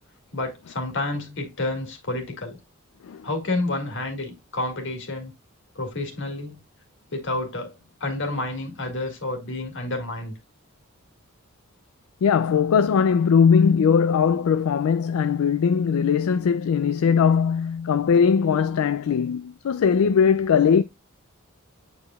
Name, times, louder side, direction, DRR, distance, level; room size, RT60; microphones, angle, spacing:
voice 1, 0.3-2.6 3.2-5.3 5.8-6.6 7.1-7.7 8.0-10.3, left 2 dB, 60° left, 2.0 m, -29 dB
voice 2, 12.2-20.8, left 6 dB, 80° left, 0.4 m, -20 dB
8.6 x 4.9 x 2.3 m
head